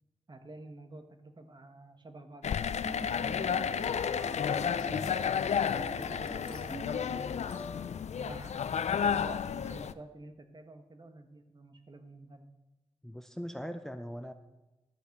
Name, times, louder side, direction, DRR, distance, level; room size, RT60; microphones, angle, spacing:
voice 1, 0.3-2.9 3.9-5.5 5.8-7.8 8.0-8.6 8.8-12.5, right 2 dB, 40° right, 7 dB, 1.3 m, -50 dB
sound 1, 2.4-9.9, left 7 dB, 80° left, 0.4 m, -32 dB
sound 2, 2.8-8.2, left 1 dB, 40° left, 3.2 m, -44 dB
voice 2, 4.9-5.3 13.0-14.3, equal, 5° left, 8 dB, 0.6 m, -40 dB
12.0 x 5.6 x 7.7 m, 1.1 s
wide cardioid pair, 90°, 11 cm